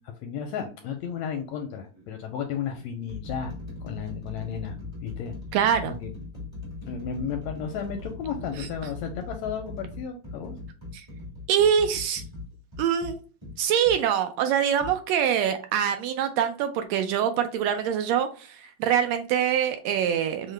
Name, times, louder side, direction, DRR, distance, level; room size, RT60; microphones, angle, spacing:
voice 1, 0.0-3.5 3.8-4.8 5.0-5.3 5.8-6.3 6.9-10.5, left 7 dB, 80° left, 5 dB, 1.6 m, -33 dB
sound 1, 0.8-1.0 1.9-2.1 2.7-14.0 14.8-15.0, left 3 dB, 25° right, 0.5 m, -40 dB
voice 2, 5.5-5.9 8.6-8.7 11.5-12.2 12.8-13.2 13.6-20.5, right 8 dB, 85° right, 7 dB, 1.5 m, -24 dB
5.6 x 2.1 x 3.2 m, 0.37 s
omnidirectional pair, 3.4 m